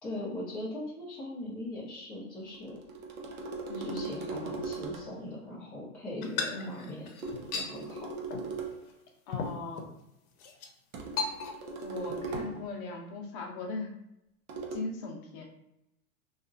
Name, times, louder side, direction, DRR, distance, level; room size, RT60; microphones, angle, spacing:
voice 1, 0.0-2.8 3.7-7.1 7.5-8.1, left 1 dB, 5° left, -9 dB, 0.3 m, -40 dB
sound 1, 2.5-5.3 7.2-8.9 10.9-12.7 14.5-14.8, right 3 dB, 85° right, 0.7 m, -39 dB
voice 2, 3.7-4.1 6.5-6.9 9.3-9.9 11.8-13.9 14.7-15.4, left 2 dB, 35° left, 1 dB, 0.6 m, -39 dB
sound 2, 6.2-7.7 8.3-8.6 8.9-9.0 9.3-9.9 10.4-10.7 11.2-11.8 12.1-12.4, left 4 dB, 80° left, 0.7 m, -36 dB
2.8 x 2.4 x 2.5 m, 0.84 s
hypercardioid pair, 125°, 42 cm